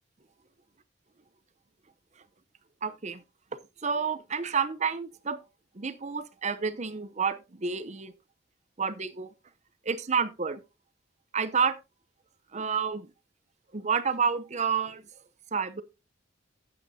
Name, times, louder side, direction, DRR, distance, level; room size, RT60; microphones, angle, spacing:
voice 1, 2.8-3.2 3.8-5.4 5.7-8.1 8.8-9.3 9.8-10.6 11.3-11.8 12.5-13.1 13.7-15.0 15.5-15.8, right 6 dB, 35° right, 0.8 m, -29 dB
12.5 x 8.6 x 2.8 m
head